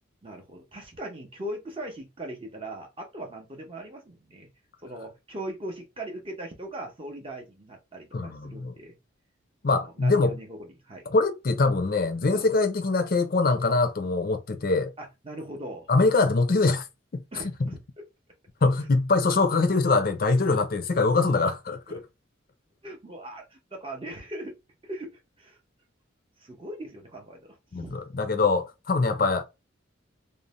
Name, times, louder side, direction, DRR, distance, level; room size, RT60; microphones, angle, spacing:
voice 1, 0.2-4.5 4.8-9.0 9.8-11.1 12.3-12.5 15.0-15.9 17.3-18.0 21.9-22.0 22.8-24.6 24.8-25.6 26.4-28.0 29.0-29.2, right 1 dB, 25° right, 0.6 m, -40 dB
voice 2, 8.1-8.7 9.6-10.4 11.1-14.9 15.9-16.8 17.6-17.7 18.6-22.0 27.7-29.4, left 3 dB, 45° left, 0.5 m, -23 dB
2.5 x 2.0 x 2.9 m
head